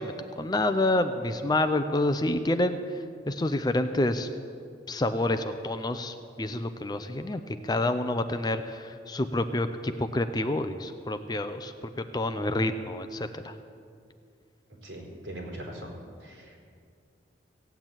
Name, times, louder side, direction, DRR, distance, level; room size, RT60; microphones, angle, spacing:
voice 1, 0.0-2.8 3.3-4.3 4.9-13.5, left 1 dB, 20° left, 9 dB, 0.5 m, -28 dB
voice 2, 14.8-15.9 16.2-16.6, right 1 dB, 70° right, -2 dB, 4.3 m, -40 dB
16.0 x 8.2 x 9.0 m, 2.3 s
head